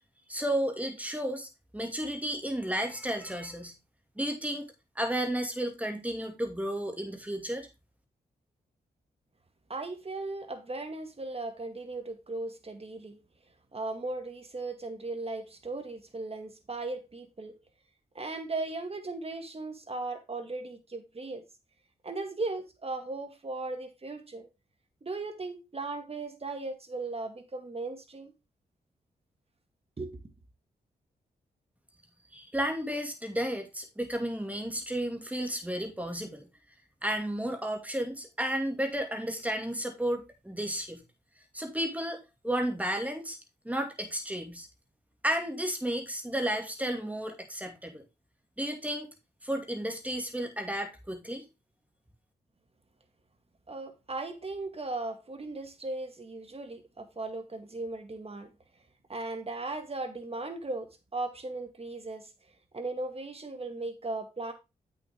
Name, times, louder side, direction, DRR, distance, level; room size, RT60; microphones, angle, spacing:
voice 1, 0.3-3.7 4.2-4.7 5.0-7.7 32.3-36.5 37.0-41.0 41.5-42.2 42.4-43.4 43.6-44.7 45.2-48.0 48.6-49.1 49.4-51.4, right 1 dB, 10° right, 2.4 m, -32 dB
voice 2, 9.7-13.2 13.7-17.5 18.1-21.4 22.0-24.5 25.0-28.3 30.0-30.1 53.7-58.5 59.1-62.3 62.7-64.5, right 2 dB, 35° right, 2.1 m, -37 dB
8.3 x 6.5 x 3.6 m
cardioid pair, 55°, 17 cm